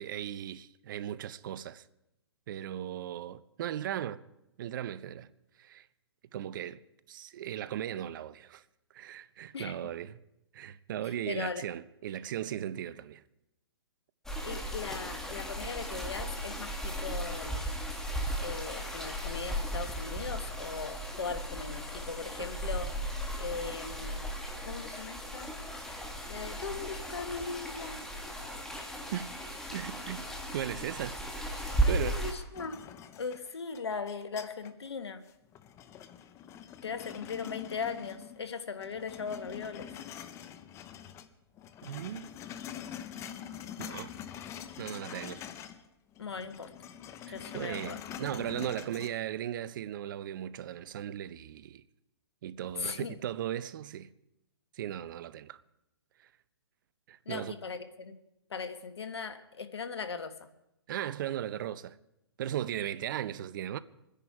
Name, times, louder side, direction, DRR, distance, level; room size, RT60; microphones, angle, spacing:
voice 1, 0.0-1.8 2.5-4.2 4.6-5.3 5.6-5.9 6.3-6.8 7.1-8.6 8.9-10.2 10.5-13.2 22.4-22.5 29.1-29.3 29.7-30.2 30.5-31.5 31.9-32.3 41.8-42.3 43.8-44.1 44.8-45.5 47.3-51.8 52.4-54.1 54.7-55.6 57.1-57.5 60.9-62.0 62.4-63.8, right 11 dB, 50° right, 0.7 m, -37 dB
voice 2, 11.0-11.6 14.4-17.7 18.4-22.9 23.4-24.3 24.6-25.5 26.3-28.0 31.8-32.8 33.2-35.2 36.8-39.9 46.2-46.7 47.3-48.0 52.7-53.1 57.2-58.2 58.5-60.3, left 5 dB, 80° left, 1.4 m, -39 dB
sound 1, 14.3-32.3, right 1 dB, 5° left, 1.8 m, -36 dB
sound 2, 32.5-34.9 35.3-38.5 38.8-41.3 41.6-45.9 46.1-49.1, left 9 dB, 20° left, 0.7 m, -45 dB
24.0 x 10.0 x 4.7 m
hypercardioid pair, 130°, 14 cm